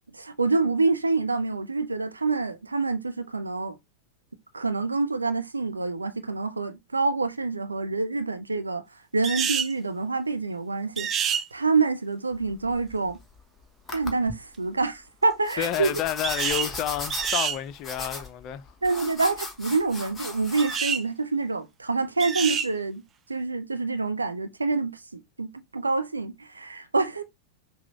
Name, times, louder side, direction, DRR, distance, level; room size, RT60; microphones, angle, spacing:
voice 1, 0.1-3.8 4.5-8.8 9.1-13.2 13.9-16.0 18.8-23.0 23.3-27.2, right 3 dB, 80° right, 0.6 m, -27 dB
sound 1, 9.2-9.7 11.0-11.4 16.2-16.7 17.1-17.6 20.6-21.0 22.2-22.7, right 7 dB, 25° right, 0.5 m, -27 dB
sound 2, 12.3-13.4 13.9-14.3 15.4-20.8, left 3 dB, 15° left, 1.2 m, -37 dB
voice 2, 15.6-18.6, left 12 dB, 40° left, 0.5 m, -30 dB
5.9 x 2.3 x 3.2 m
figure-of-eight pair, 90°, 0 cm